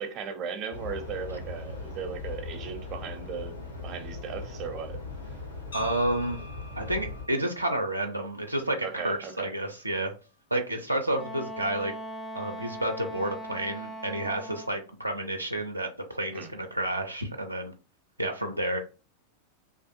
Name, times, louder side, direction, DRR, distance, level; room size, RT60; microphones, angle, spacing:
voice 1, 0.0-5.0 8.8-9.5 16.3-16.5, right 6 dB, 35° right, 0.6 m, -37 dB
sound 1, 0.7-7.3, left 3 dB, 85° left, 1.3 m, -39 dB
sound 2, 5.7-9.8, left 1 dB, 70° left, 0.8 m, -48 dB
voice 2, 5.7-6.4 6.8-10.1 10.5-11.9 12.3-17.7 18.2-18.8, right 1 dB, 85° right, 0.4 m, -30 dB
Wind instrument woodwind instrument, 11.1-14.8, right 1 dB, 20° left, 0.4 m, -39 dB
2.6 x 2.4 x 2.5 m
figure-of-eight pair, 90°, 0 cm